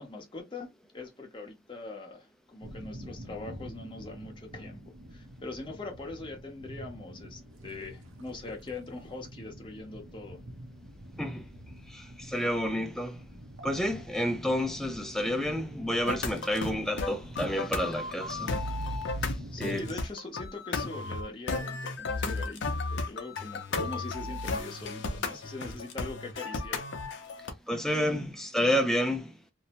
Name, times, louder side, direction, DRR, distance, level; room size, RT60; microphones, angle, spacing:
voice 1, 0.0-10.4 19.4-26.8, left 2 dB, 25° left, 0.8 m, -42 dB
sound 1, 2.6-20.0, equal, 80° right, 0.7 m, -46 dB
voice 2, 11.9-13.2 13.6-19.0 19.2-19.8 27.4-29.3, equal, ahead, 0.4 m, -30 dB
sound 2, 16.1-27.5, left 3 dB, 60° left, 0.6 m, -34 dB
2.6 x 2.0 x 2.8 m
head